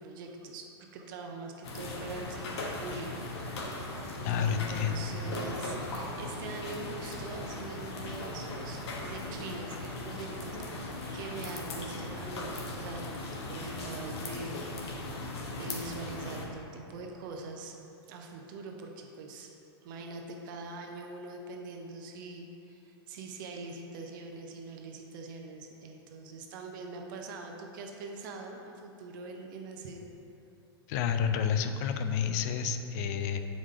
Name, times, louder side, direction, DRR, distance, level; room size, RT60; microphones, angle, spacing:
voice 1, 0.0-3.3 4.3-15.0 15.5-17.8 18.1-19.5 19.8-30.0, right 3 dB, 50° right, 2 dB, 0.6 m, -43 dB
sound 1, 1.6-16.5, left 2 dB, 80° left, 1.1 m, -38 dB
voice 2, 4.2-5.0 30.9-33.4, left 7 dB, 40° left, 8 dB, 0.4 m, -30 dB
7.7 x 4.9 x 3.7 m, 2.8 s
supercardioid pair, 160°, 14 cm